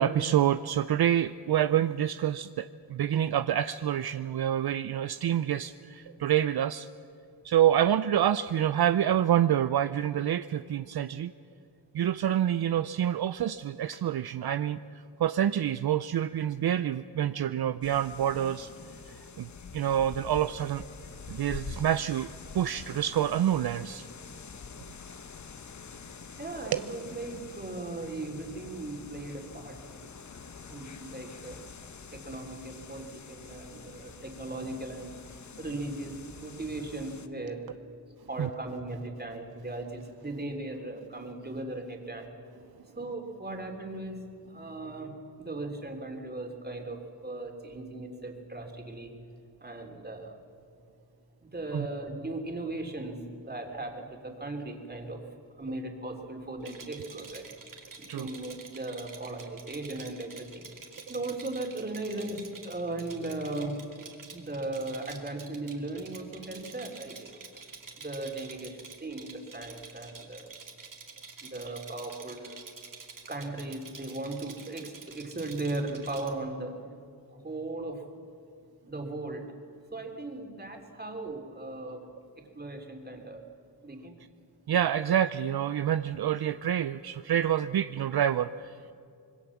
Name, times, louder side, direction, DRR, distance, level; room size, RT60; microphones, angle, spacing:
voice 1, 0.0-6.9 7.4-11.3 11.9-14.8 15.2-18.7 19.4-19.5 19.7-20.9 21.3-22.3 22.5-24.1 26.7-26.8 38.4-38.5 51.7-51.9 58.1-58.3 84.7-88.7, right 10 dB, 65° right, 13 dB, 0.6 m, -27 dB
sound 1, 17.8-37.3, left 5 dB, 45° left, 1.1 m, -46 dB
voice 2, 26.4-30.1 30.7-31.6 32.1-35.2 35.6-37.9 38.3-42.3 43.0-44.2 44.5-45.1 45.4-49.1 49.6-50.3 51.4-55.2 55.6-57.5 58.0-60.7 61.1-63.8 64.3-67.4 68.0-70.5 71.4-72.6 73.3-76.8 77.3-78.0 78.9-79.5 79.9-82.0 82.5-83.4 83.8-84.1, right 2 dB, 25° right, 2 dB, 3.3 m, -37 dB
Rattle, 56.6-76.3, right 4 dB, 50° right, 2.8 m, -48 dB
25.5 x 21.0 x 7.2 m, 2.5 s
wide cardioid pair, 100°, 41 cm